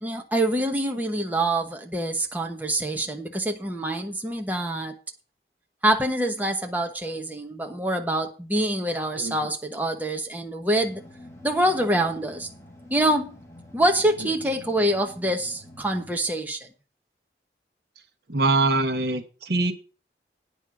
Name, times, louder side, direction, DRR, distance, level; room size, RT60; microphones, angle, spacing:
voice 1, 0.0-5.0 5.8-11.0 11.4-12.5 12.9-13.3 13.7-16.6, right 1 dB, 10° right, 1.1 m, -25 dB
sound 1, 10.8-16.1, left 1 dB, 15° left, 2.2 m, -47 dB
voice 2, 18.3-19.7, right 3 dB, 60° right, 1.2 m, -23 dB
9.5 x 5.5 x 7.5 m
head